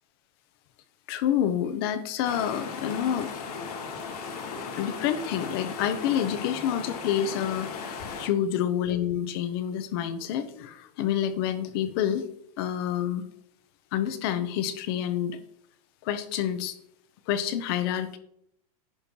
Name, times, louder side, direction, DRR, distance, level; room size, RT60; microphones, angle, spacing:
voice 1, 1.1-3.3 4.8-12.3 12.6-13.2 13.9-15.4 16.0-16.8 17.3-18.2, left 10 dB, 40° left, 11 dB, 1.0 m, -28 dB
sound 1, 2.2-8.3, left 5 dB, 85° left, 2.8 m, -36 dB
11.0 x 4.4 x 6.3 m, 0.71 s
supercardioid pair, 180°, 19 cm